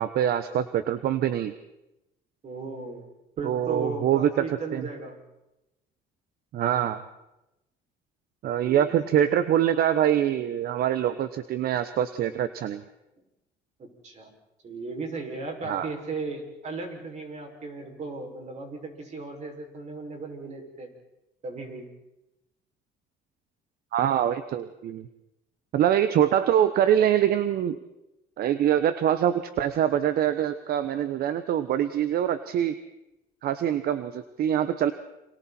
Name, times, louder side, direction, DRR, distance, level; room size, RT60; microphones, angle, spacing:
voice 1, 0.0-1.5 3.4-4.9 6.5-7.0 8.4-12.8 15.7-15.9 23.9-25.1 25.7-27.8 28.4-32.8 33.4-34.9, right 10 dB, 65° right, 12 dB, 1.1 m, -24 dB
voice 2, 2.4-3.1 3.4-5.2 8.6-9.0 13.8-14.3 14.6-20.9 21.4-21.9, right 3 dB, 45° right, 2 dB, 6.4 m, -36 dB
29.5 x 26.5 x 4.5 m, 0.92 s
cardioid pair, 110°, 17 cm